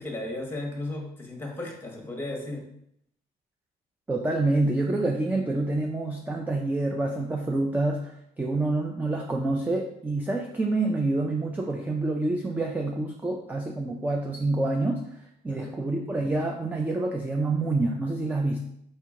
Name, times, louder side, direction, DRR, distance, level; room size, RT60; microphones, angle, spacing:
voice 1, 0.0-2.7 15.5-15.8, left 2 dB, 10° left, 1 dB, 1.1 m, -35 dB
voice 2, 4.1-15.0 15.4-18.6, right 2 dB, 10° right, 2 dB, 0.4 m, -27 dB
4.4 x 2.8 x 3.6 m, 0.73 s
cardioid pair, 110°, 17 cm